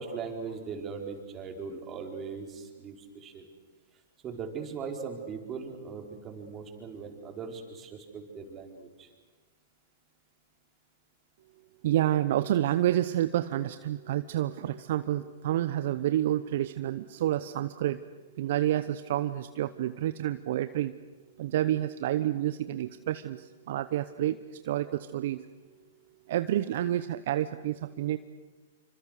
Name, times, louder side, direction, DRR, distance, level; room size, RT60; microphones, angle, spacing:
voice 1, 0.0-3.5 4.2-9.1, right 5 dB, 25° right, 3 dB, 4.4 m, -39 dB
voice 2, 11.8-18.0 18.4-21.0 21.4-24.4 24.6-25.5 26.3-28.2, right 13 dB, 60° right, 12 dB, 0.8 m, -29 dB
27.0 x 25.5 x 6.6 m, 1.4 s
hypercardioid pair, 115°, 0 cm